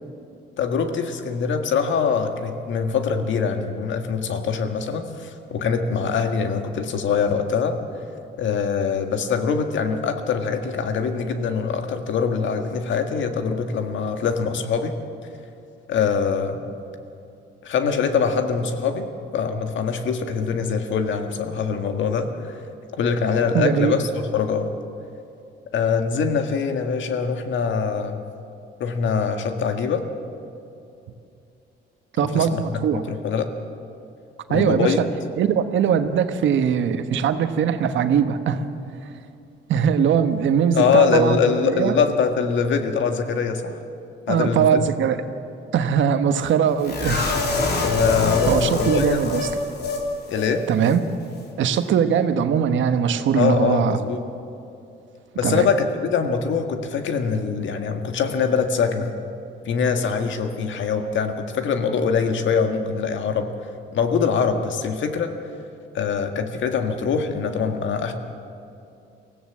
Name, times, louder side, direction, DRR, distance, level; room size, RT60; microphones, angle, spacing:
voice 1, 0.6-7.8 8.4-14.9 15.9-16.6 17.6-19.1 19.3-22.6 23.0-24.7 25.7-28.3 28.8-30.0 32.2-33.5 34.5-35.0 40.7-43.8 44.3-44.9 47.8-49.3 50.3-50.6 53.4-54.2 55.4-59.2 59.7-63.5 63.9-65.3 65.9-68.1, left 6 dB, 70° left, 6 dB, 1.8 m, -23 dB
voice 2, 23.5-24.0 32.2-33.0 34.5-35.1 35.4-38.6 39.7-41.4 41.7-42.0 44.3-45.2 45.7-47.3 48.5-49.5 50.7-51.0 51.6-54.0 55.4-55.7, right 7 dB, 75° right, 9 dB, 1.2 m, -21 dB
sound 1, 46.8-50.0 50.3-50.5 50.8-51.0, left 3 dB, 55° left, 3.4 m, -24 dB
23.5 x 15.5 x 7.5 m, 2.7 s
cardioid pair, 90°, 20 cm